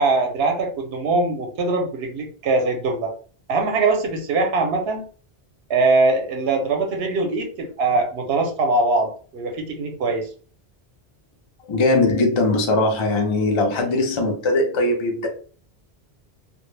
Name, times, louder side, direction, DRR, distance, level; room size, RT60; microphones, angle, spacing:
voice 1, 0.0-3.1 3.5-5.1 5.7-10.3, right 3 dB, 75° right, 3 dB, 0.9 m, -22 dB
voice 2, 11.7-15.3, left 2 dB, 45° left, 2 dB, 0.4 m, -20 dB
2.1 x 2.0 x 3.1 m, 0.42 s
omnidirectional pair, 1.1 m